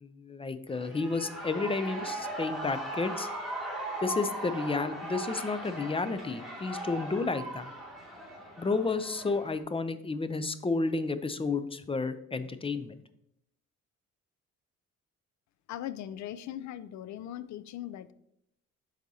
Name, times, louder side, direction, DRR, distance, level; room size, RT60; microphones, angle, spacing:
voice 1, 0.0-3.3 4.0-7.7 8.6-13.0, left 3 dB, 20° left, 11 dB, 0.5 m, -31 dB
Shout / Cheering, 0.7-9.6, right 1 dB, ahead, 2.2 m, -39 dB
voice 2, 15.7-18.1, left 11 dB, 70° left, 15 dB, 0.5 m, -39 dB
11.0 x 4.1 x 2.8 m, 0.78 s
cardioid pair, 90°, 30 cm